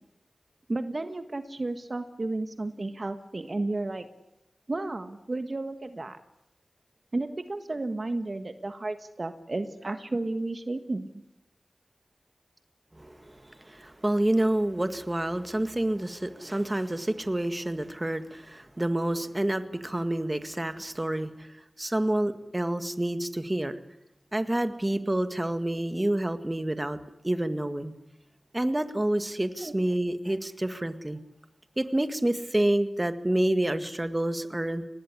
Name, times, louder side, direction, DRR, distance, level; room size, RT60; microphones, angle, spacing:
voice 1, 0.7-4.1 4.7-6.2 7.1-11.1 29.6-29.7, right 2 dB, 50° right, 8 dB, 1.5 m, -32 dB
voice 2, 12.9-21.5 21.8-23.8 24.3-27.0 27.2-27.9 28.5-31.2 31.8-34.9, right 1 dB, 25° right, 9 dB, 1.9 m, -28 dB
24.5 x 19.5 x 9.9 m, 0.91 s
wide cardioid pair, 50°, 0 cm